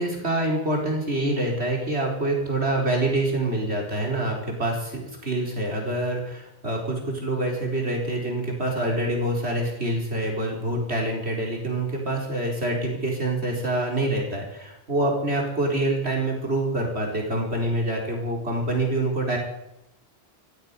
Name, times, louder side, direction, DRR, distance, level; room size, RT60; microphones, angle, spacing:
voice 1, 0.0-19.4, right 1 dB, 75° right, 0 dB, 4.5 m, -26 dB
15.0 x 9.8 x 9.6 m, 0.85 s
omnidirectional pair, 1.1 m